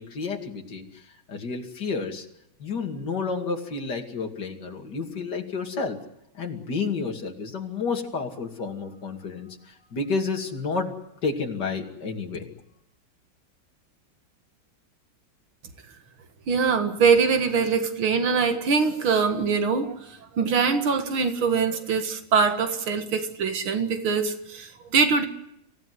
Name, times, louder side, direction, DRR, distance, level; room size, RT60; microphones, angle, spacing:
voice 1, 0.0-2.3 2.6-6.0 6.4-12.5, left 4 dB, 55° left, 2 dB, 3.1 m, -31 dB
voice 2, 16.5-25.3, right 5 dB, 85° right, 7 dB, 2.5 m, -23 dB
26.5 x 16.0 x 9.6 m, 0.81 s
omnidirectional pair, 2.2 m